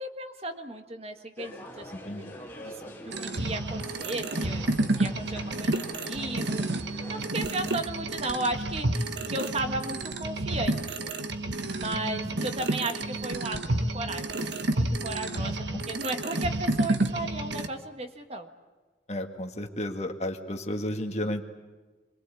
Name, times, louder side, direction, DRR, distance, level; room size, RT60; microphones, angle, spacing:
voice 1, 0.0-2.2 2.6-4.7 5.0-6.6 7.1-11.1 11.7-18.5, right 2 dB, 35° right, 6 dB, 1.6 m, -35 dB
sound 1, 1.4-7.3, left 1 dB, 10° left, 4.5 m, -45 dB
sound 2, 3.1-17.7, right 2 dB, 75° right, 1.5 m, -30 dB
voice 2, 11.9-12.5 15.3-15.5 19.1-21.4, left 1 dB, 35° left, 4 dB, 2.0 m, -33 dB
26.5 x 23.0 x 8.4 m, 1.3 s
head